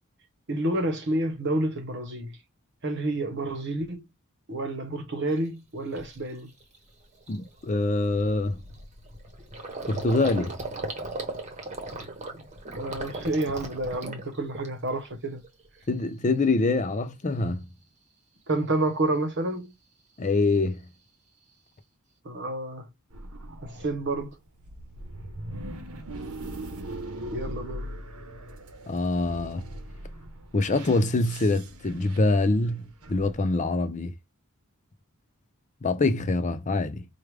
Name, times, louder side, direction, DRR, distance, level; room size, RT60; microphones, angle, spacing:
voice 1, 0.5-2.3 2.8-4.0 4.5-6.5 12.7-15.4 18.5-19.7 22.2-22.9 23.6-24.3 27.3-27.9, right 2 dB, 55° right, 1.0 m, -29 dB
Gurgling, 5.4-5.5 6.0-6.2 6.6-6.8 7.0-15.1 15.4-16.0, right 2 dB, 35° right, 1.0 m, -38 dB
voice 2, 7.3-8.6 9.9-10.5 15.9-17.7 20.2-20.8 28.9-29.6 30.5-32.8 33.1-34.1 35.8-37.0, left 2 dB, 35° left, 0.5 m, -25 dB
sound 1, 23.1-33.4, right 1 dB, 85° right, 0.9 m, -40 dB
4.8 x 2.4 x 3.3 m
head